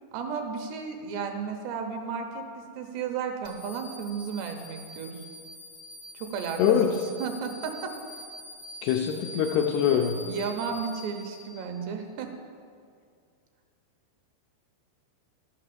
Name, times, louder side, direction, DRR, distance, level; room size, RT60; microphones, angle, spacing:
voice 1, 0.1-5.3 6.1-7.9 10.1-12.3, right 6 dB, 75° right, 4 dB, 2.9 m, -34 dB
sound 1, 3.4-11.9, left 1 dB, 55° left, 1.4 m, -45 dB
voice 2, 8.8-10.2, left 8 dB, 80° left, 2 dB, 2.4 m, -23 dB
12.0 x 6.8 x 7.7 m, 2.2 s
omnidirectional pair, 5.1 m